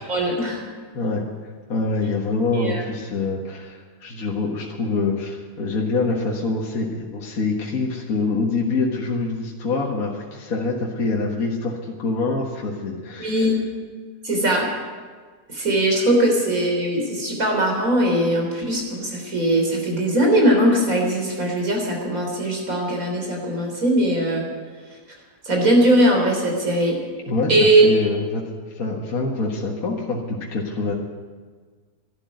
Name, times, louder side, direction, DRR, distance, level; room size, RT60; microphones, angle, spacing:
voice 1, 0.1-0.6 2.5-2.8 13.2-13.6 14.2-14.7 15.5-24.4 25.4-27.0 27.5-27.9, right 1 dB, 55° right, 0 dB, 4.1 m, -20 dB
voice 2, 0.9-13.5 27.3-30.9, left 3 dB, 60° left, -2 dB, 2.0 m, -25 dB
12.5 x 11.5 x 9.2 m, 1.5 s
omnidirectional pair, 1.7 m